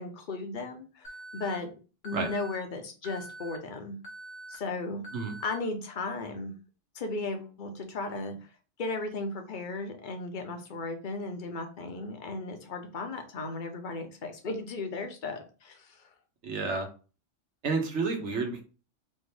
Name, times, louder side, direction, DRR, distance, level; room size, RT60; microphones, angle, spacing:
voice 1, 0.0-1.7 2.0-4.0 4.5-5.0 5.4-6.5 6.9-8.3 8.8-16.1, left 3 dB, 45° left, 5 dB, 0.9 m, -36 dB
Alarm, 1.0-1.5 2.0-2.5 3.0-3.5 4.0-4.5 5.0-5.5, right 2 dB, 85° left, 1.4 m, -44 dB
voice 2, 16.4-16.9 17.6-18.6, right 4 dB, 70° right, 3 dB, 1.3 m, -30 dB
4.3 x 2.9 x 3.4 m, 0.35 s
omnidirectional pair, 1.3 m